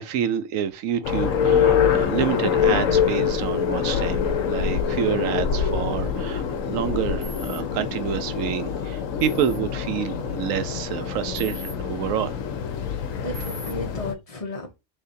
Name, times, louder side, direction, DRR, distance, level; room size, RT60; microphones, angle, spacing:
voice 1, 0.0-12.3, right 9 dB, 80° right, 1.0 m, -28 dB
sound 1, 1.0-14.1, left 7 dB, 75° left, 1.0 m, -25 dB
sound 2, 7.2-7.6 9.2-9.6 11.3-11.7 13.3-13.7, right 2 dB, 25° right, 1.7 m, -40 dB
voice 2, 12.8-14.8, left 2 dB, 30° left, 0.8 m, -34 dB
3.8 x 3.5 x 2.6 m
omnidirectional pair, 1.4 m